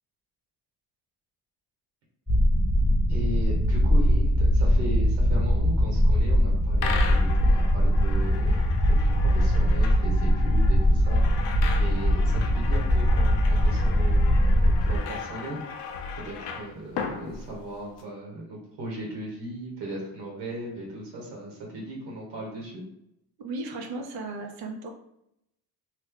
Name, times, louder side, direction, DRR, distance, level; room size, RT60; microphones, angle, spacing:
sound 1, 2.3-15.0, equal, ahead, 0.5 m, -21 dB
voice 1, 3.1-8.6 8.9-22.8, right 1 dB, 85° right, -2 dB, 1.3 m, -37 dB
sound 2, 6.8-18.0, left 6 dB, 90° left, 0.6 m, -37 dB
voice 2, 23.4-24.9, right 2 dB, 60° right, 4 dB, 0.7 m, -35 dB
3.2 x 2.2 x 3.6 m, 0.77 s
cardioid pair, 135°, 41 cm